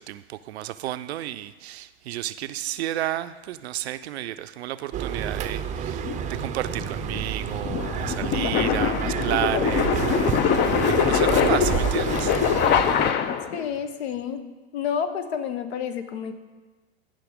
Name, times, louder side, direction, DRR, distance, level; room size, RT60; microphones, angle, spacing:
voice 1, 0.0-10.5 10.9-12.4, right 13 dB, 70° right, 0.5 m, -32 dB
sound 1, 4.9-13.1, right 8 dB, 20° right, 0.6 m, -29 dB
sound 2, 6.0-13.6, left 9 dB, 30° left, 0.5 m, -24 dB
voice 2, 13.5-14.4 14.7-16.3, left 8 dB, 65° left, 1.0 m, -29 dB
15.0 x 5.7 x 3.5 m
hypercardioid pair, 100°, 33 cm